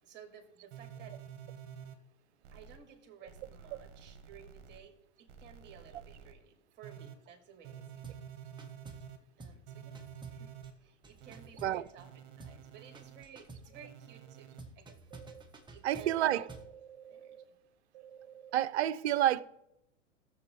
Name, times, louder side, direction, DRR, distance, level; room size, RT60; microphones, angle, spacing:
voice 1, 0.0-1.2 2.5-8.1 9.2-10.0 10.3-10.5 10.8-12.1 12.4-15.0 15.7-16.4 17.0-17.5, right 8 dB, 30° right, 2.4 m, -55 dB
sound 1, 0.7-1.9 2.4-2.8 3.3-4.8 5.3-6.3 6.8-7.1 7.6-9.2 9.7-10.7 11.2-11.5 12.0-13.2 13.7-14.6 15.1-15.4 15.9-17.4 17.9-18.6, right 8 dB, 45° right, 1.6 m, -50 dB
sound 2, 8.0-8.3 8.6-9.1 9.4-9.7 9.9-12.1 12.4-12.7 12.9-13.7 14.6-16.7, right 2 dB, 10° right, 1.2 m, -51 dB
voice 2, 15.8-16.4 18.5-19.4, right 12 dB, 60° right, 0.7 m, -28 dB
18.5 x 6.9 x 3.5 m
hypercardioid pair, 100°, 37 cm